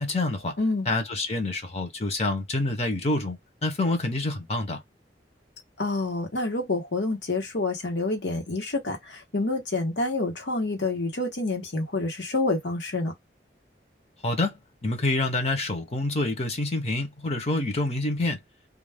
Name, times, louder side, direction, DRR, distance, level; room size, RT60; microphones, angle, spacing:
voice 1, 0.0-0.6 0.9-4.8 14.2-14.5 14.8-18.4, left 2 dB, 35° left, 0.7 m, -27 dB
voice 2, 0.6-0.9 5.8-13.1, left 2 dB, 85° left, 1.1 m, -28 dB
2.4 x 2.3 x 3.3 m
head